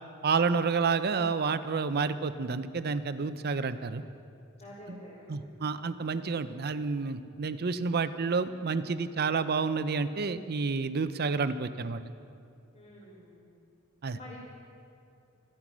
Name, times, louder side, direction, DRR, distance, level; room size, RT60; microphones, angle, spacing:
voice 1, 0.2-4.0 4.9-5.0 5.3-12.0 14.0-14.2, right 4 dB, 50° right, 12 dB, 0.6 m, -29 dB
voice 2, 4.6-5.6 12.7-13.5 14.1-14.4, left 1 dB, 40° left, -11 dB, 3.4 m, -49 dB
14.0 x 13.0 x 6.1 m, 2.5 s
head